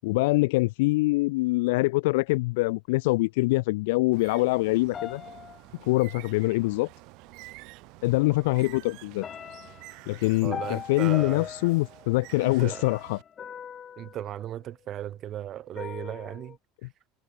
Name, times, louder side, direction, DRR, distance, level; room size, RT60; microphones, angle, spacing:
voice 1, 0.0-5.2 5.8-6.9 8.0-9.3 10.1-13.2 16.8-16.9, left 22 dB, 85° left, 1.3 m, -24 dB
Bird, 4.1-13.2, right 25 dB, 60° right, 7.2 m, -49 dB
sound 1, 4.9-6.4 7.6-7.7 8.1-8.7 9.2-15.1 15.8-16.6, left 8 dB, 25° left, 3.1 m, -42 dB
voice 2, 10.4-11.5 12.4-12.8 14.0-16.6, right 12 dB, 35° right, 3.9 m, -36 dB
cardioid pair, 155°, 0 cm